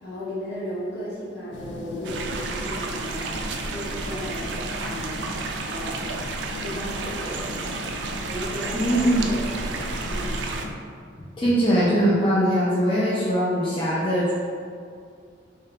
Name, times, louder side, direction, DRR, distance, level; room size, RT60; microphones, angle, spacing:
voice 1, 0.0-4.5 4.8-6.1 6.6-7.7 8.3-10.4, equal, 60° left, -8 dB, 1.2 m, -35 dB
sound 1, 1.5-10.7, left 2 dB, 75° left, 0.4 m, -37 dB
sound 2, 2.0-10.7, right 3 dB, 70° right, 0.3 m, -32 dB
voice 2, 8.7-9.2 11.4-14.3, equal, 25° left, -9 dB, 0.5 m, -21 dB
3.5 x 2.8 x 3.4 m, 2.3 s
head